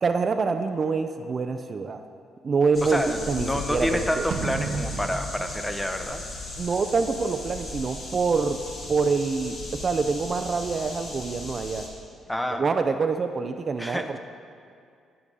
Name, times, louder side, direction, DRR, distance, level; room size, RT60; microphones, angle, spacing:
voice 1, 0.0-2.0 2.4-4.3 6.6-8.6 8.9-11.9 12.6-14.2, right 4 dB, 40° right, 8 dB, 0.4 m, -26 dB
sound 1, 2.7-11.9, left 2 dB, 55° left, 1.8 m, -37 dB
voice 2, 2.8-6.2 12.3-12.7 13.8-14.2, left 1 dB, 10° left, 7 dB, 0.6 m, -28 dB
sound 2, 4.3-6.8, right 4 dB, 70° right, 0.8 m, -33 dB
11.0 x 5.1 x 5.4 m, 2.3 s
cardioid pair, 90°, 0 cm